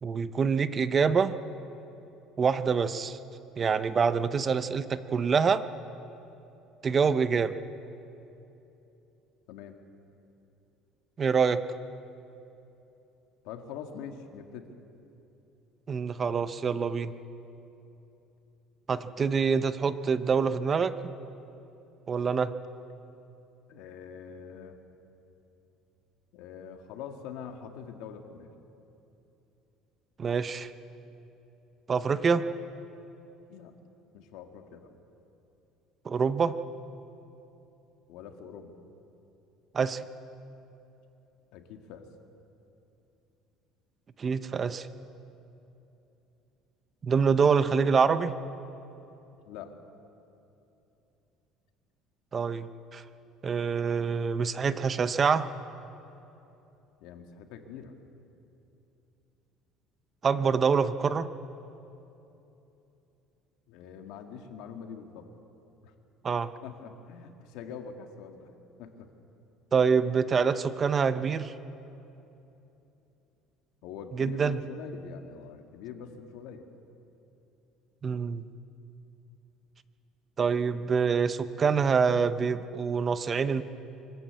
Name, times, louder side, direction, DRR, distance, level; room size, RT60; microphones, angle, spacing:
voice 1, 0.0-1.4 2.4-3.2 3.6-5.6 6.8-7.5 11.2-11.6 15.9-17.1 18.9-20.9 22.1-22.5 30.2-30.7 31.9-32.5 36.0-36.5 39.7-40.0 44.2-44.9 47.0-48.3 52.3-53.0 53.4-55.4 60.2-61.3 66.2-66.5 69.7-71.5 74.2-74.6 78.0-78.4 80.4-83.6, right 5 dB, 30° right, 13 dB, 0.7 m, -26 dB
voice 2, 9.5-9.8 13.4-14.7 23.7-24.8 26.3-28.5 33.5-33.8 34.1-34.9 38.1-38.8 41.5-42.1 49.5-49.8 57.0-57.9 63.7-65.3 65.8-65.9 66.6-68.5 68.8-69.1 73.8-76.7, left 7 dB, 75° left, 5 dB, 1.9 m, -44 dB
24.0 x 13.5 x 8.3 m, 2.9 s
cardioid pair, 135°, 0 cm